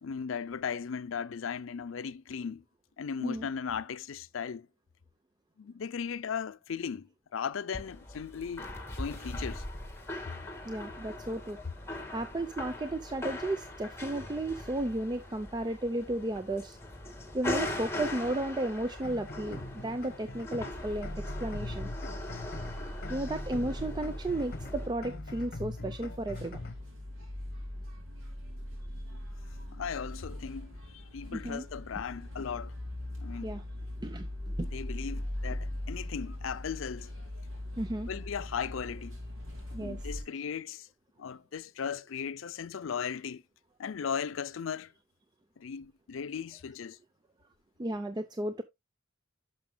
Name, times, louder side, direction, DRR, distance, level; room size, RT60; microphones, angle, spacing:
voice 1, 0.0-2.6 3.0-4.7 5.6-9.6 29.7-32.7 33.2-33.5 34.6-37.1 38.1-39.2 39.8-40.9 41.2-43.4 43.8-44.9 45.6-47.0, left 6 dB, 75° left, 0.5 m, -37 dB
sound 1, 7.7-24.9, left 1 dB, 15° left, 1.8 m, -41 dB
voice 2, 10.7-11.6 12.1-16.8 17.3-21.1 21.4-21.9 23.1-26.6 31.3-31.7 33.4-33.6 34.0-34.3 34.6-34.7 37.8-38.1 39.7-40.0 47.8-48.6, right 1 dB, 20° right, 0.5 m, -34 dB
sound 2, 19.0-26.8, left 2 dB, 50° left, 1.0 m, -43 dB
sound 3, 20.7-40.2, left 1 dB, 80° right, 4.5 m, -40 dB
11.0 x 6.2 x 2.2 m
head